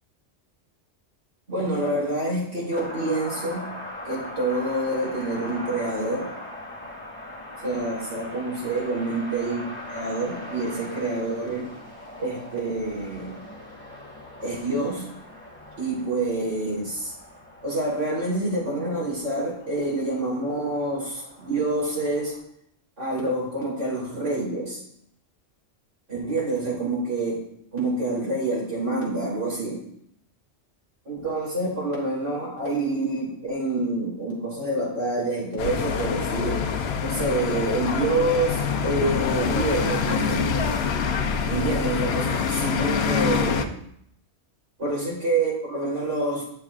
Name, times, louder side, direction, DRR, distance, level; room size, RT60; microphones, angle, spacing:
voice 1, 1.5-3.7 4.1-6.3 7.6-9.6 9.9-11.7 12.2-13.4 14.4-15.1 15.8-17.1 17.6-22.4 23.0-24.8 26.1-27.4 27.7-29.8 31.1-36.7 37.0-40.7 41.5-43.7 44.8-46.4, right 2 dB, 80° right, -5 dB, 3.9 m, -27 dB
sound 1, 2.7-22.4, left 1 dB, 10° left, 1.9 m, -40 dB
sound 2, 35.6-43.7, left 6 dB, 65° left, 0.8 m, -25 dB
12.0 x 6.9 x 2.4 m, 0.72 s
omnidirectional pair, 1.2 m